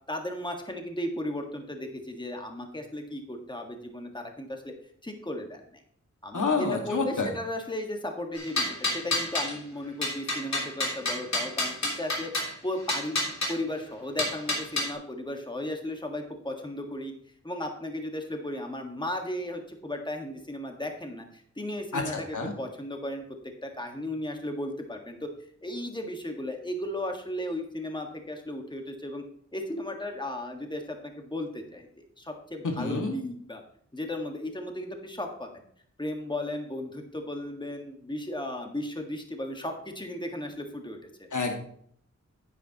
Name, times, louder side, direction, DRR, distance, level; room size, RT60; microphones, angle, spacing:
voice 1, 0.1-4.7 5.0-5.8 6.2-12.3 12.6-17.1 17.4-23.2 23.6-25.3 25.6-29.2 29.5-33.6 33.9-35.6 36.0-41.3, left 1 dB, 15° left, 3 dB, 1.6 m, -35 dB
voice 2, 6.3-7.3 21.9-22.0 22.3-22.5 32.6-33.2 41.3-41.5, left 4 dB, 80° left, 2 dB, 1.9 m, -28 dB
sound 1, 8.4-9.5 10.0-12.5 12.9-13.5 14.2-14.9, left 1 dB, 65° left, 3.1 m, -29 dB
10.0 x 9.4 x 3.0 m, 0.63 s
wide cardioid pair, 65°, 30 cm